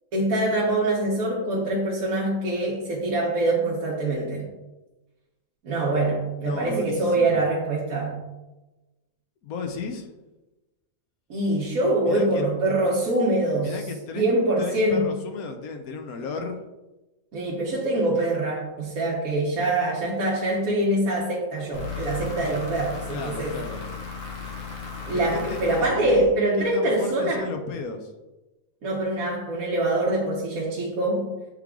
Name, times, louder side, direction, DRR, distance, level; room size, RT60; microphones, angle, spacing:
voice 1, 0.1-4.5 5.6-8.2 11.3-13.8 14.1-15.1 17.3-23.6 25.1-27.4 28.8-31.3, right 1 dB, 70° right, -5 dB, 1.6 m, -24 dB
voice 2, 6.4-7.4 9.4-10.1 12.0-12.4 13.6-14.3 14.6-16.6 23.1-23.8 25.0-25.6 26.0-26.3 26.6-28.1, left 4 dB, 80° left, 5 dB, 1.2 m, -34 dB
sound 1, 21.7-26.7, left 5 dB, 65° left, 1.5 m, -36 dB
8.2 x 3.4 x 3.7 m, 1.1 s
omnidirectional pair, 1.5 m